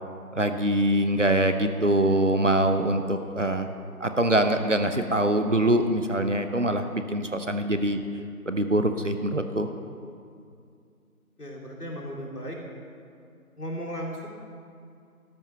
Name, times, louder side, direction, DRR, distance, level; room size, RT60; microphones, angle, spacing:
voice 1, 0.3-3.7 4.0-8.0 8.5-9.7, right 1 dB, 55° right, 7 dB, 0.8 m, -24 dB
voice 2, 11.4-12.6 13.6-14.3, equal, 90° left, -1 dB, 2.9 m, -35 dB
13.0 x 8.6 x 6.0 m, 2.4 s
figure-of-eight pair, 180°, 45 cm